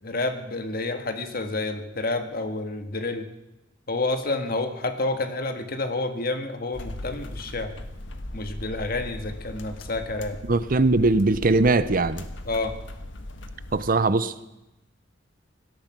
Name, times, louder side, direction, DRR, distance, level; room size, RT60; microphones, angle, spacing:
voice 1, 0.0-3.3 3.9-7.8 8.3-10.4 12.4-12.8, left 2 dB, 55° left, 1.7 m, -29 dB
sound 1, 6.7-13.9, left 1 dB, 85° left, 1.5 m, -38 dB
voice 2, 10.5-12.2 13.7-14.3, right 3 dB, 50° right, 0.7 m, -20 dB
17.5 x 13.0 x 6.0 m
head